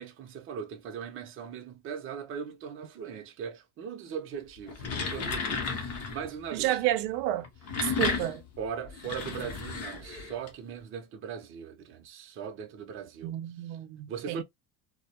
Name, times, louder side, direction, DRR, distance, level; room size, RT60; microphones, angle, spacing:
voice 1, 0.0-6.8 8.6-13.4 13.7-13.8 14.1-14.4, right 7 dB, 30° right, 0.5 m, -39 dB
sound 1, 4.6-6.3 7.4-10.5, left 5 dB, 35° left, 0.6 m, -33 dB
voice 2, 6.5-7.5 7.8-8.4 13.2-14.4, right 14 dB, 85° right, 0.6 m, -30 dB
2.2 x 2.0 x 2.7 m
cardioid pair, 145°, 46 cm